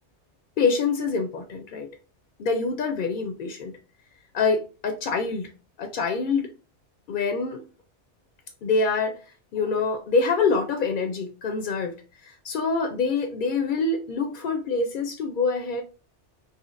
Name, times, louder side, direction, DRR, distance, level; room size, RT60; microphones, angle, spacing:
voice 1, 0.6-1.9 2.4-3.7 4.3-5.5 5.8-6.5 7.1-7.6 8.6-9.1 9.5-11.9 12.2-15.8, left 4 dB, 60° left, 5 dB, 0.5 m, -25 dB
4.2 x 2.7 x 2.4 m, 0.34 s
omnidirectional pair, 1.2 m